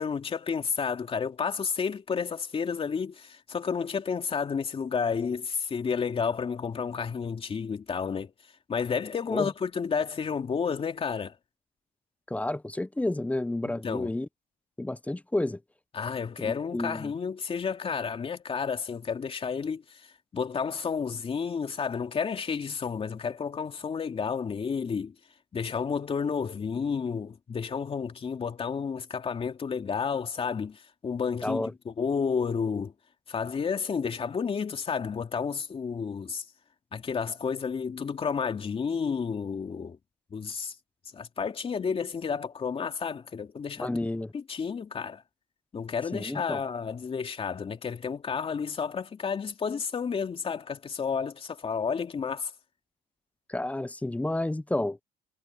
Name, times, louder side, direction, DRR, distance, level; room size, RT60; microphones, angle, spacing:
voice 1, 0.0-8.3 8.7-11.3 13.6-14.1 15.9-19.8 20.3-25.1 25.5-32.9 33.3-36.4 36.9-40.0 40.3-40.7 41.1-43.9 44.3-45.2 45.7-52.5, left 6 dB, 35° left, 3.0 m, -31 dB
voice 2, 12.3-14.3 14.8-15.6 16.4-17.1 31.4-31.7 43.8-44.3 46.1-46.6 53.5-55.0, left 1 dB, 10° left, 0.8 m, -30 dB
cardioid pair, 110°, 17 cm